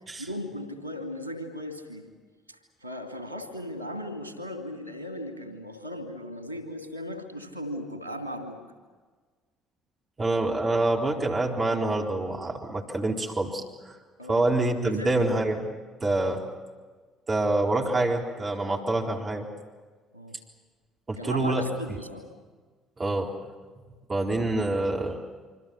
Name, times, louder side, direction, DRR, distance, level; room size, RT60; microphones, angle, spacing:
voice 1, 0.2-2.1 2.5-8.6 14.2-14.5 14.8-15.4 20.1-20.4 21.2-22.3, equal, 85° left, 6 dB, 2.7 m, -37 dB
voice 2, 10.2-14.0 14.3-15.7 16.0-16.4 17.3-19.5 21.1-22.0 23.0-23.3 24.1-25.2, right 2 dB, 30° right, 0 dB, 4.1 m, -26 dB
26.0 x 26.0 x 7.2 m, 1.4 s
figure-of-eight pair, 50°, 0 cm